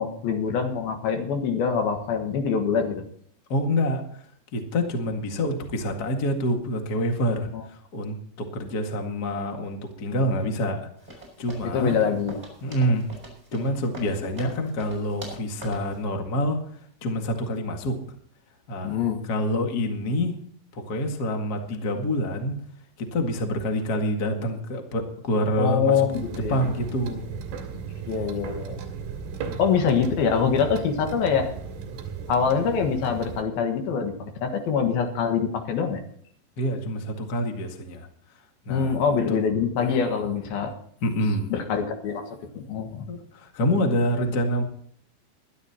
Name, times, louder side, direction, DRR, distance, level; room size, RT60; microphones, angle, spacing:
voice 1, 0.0-3.0 7.5-7.6 11.7-12.4 18.8-19.2 25.6-26.6 28.1-28.8 29.6-31.5 32.3-36.0 38.7-40.7 41.5-42.2 42.5-43.1, left 6 dB, 65° left, 5 dB, 3.0 m, -24 dB
voice 2, 3.5-12.0 12.6-13.1 13.5-18.0 18.7-20.4 20.7-22.6 23.0-26.1 26.3-27.2 29.5-29.6 36.6-39.4 41.0-41.5 43.1-44.6, equal, 85° left, 3 dB, 0.8 m, -27 dB
sound 1, 11.0-16.0, equal, 10° right, 5.7 m, -42 dB
sound 2, 26.1-33.4, right 6 dB, 65° right, 3.8 m, -36 dB
22.5 x 12.0 x 2.9 m, 0.62 s
omnidirectional pair, 5.3 m